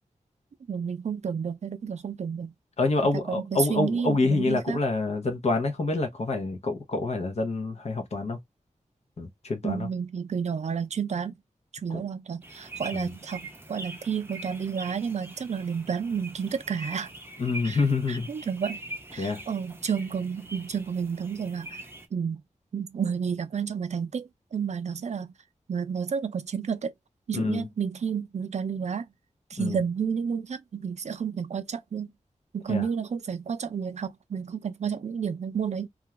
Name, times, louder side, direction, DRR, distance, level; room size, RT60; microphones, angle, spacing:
voice 1, 0.7-2.5 3.1-4.8 9.6-11.3 11.8-17.1 17.6-17.8 18.1-18.8 19.1-21.8 22.1-22.4 22.7-25.3 25.7-26.9 27.3-29.1 29.5-32.1 32.5-35.9, right 6 dB, 60° right, 0.4 m, -31 dB
voice 2, 2.8-8.4 9.2-9.9 11.9-12.0 12.9-13.1 17.4-18.3 19.2-19.4 27.3-27.7 29.6-29.8 32.7-32.9, left 3 dB, 55° left, 0.7 m, -27 dB
sound 1, 12.4-22.1, right 1 dB, 20° right, 0.6 m, -43 dB
2.4 x 2.2 x 2.9 m
wide cardioid pair, 100°, 13 cm